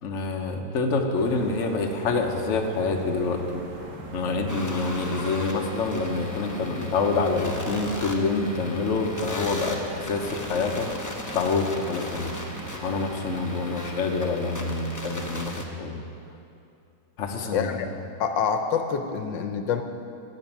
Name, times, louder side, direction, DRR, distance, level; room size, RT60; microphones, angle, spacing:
voice 1, 0.0-3.6 4.1-10.9 11.3-12.3 12.8-16.0 17.2-17.9, left 3 dB, 50° left, 2 dB, 1.1 m, -27 dB
sound 1, 1.1-14.2, right 2 dB, 65° right, 2.0 m, -41 dB
sound 2, 4.5-15.6, left 1 dB, 30° left, 0.3 m, -38 dB
voice 2, 17.5-17.9 18.2-19.8, left 7 dB, 80° left, 7 dB, 1.4 m, -26 dB
14.5 x 5.3 x 9.1 m, 2.7 s
omnidirectional pair, 2.0 m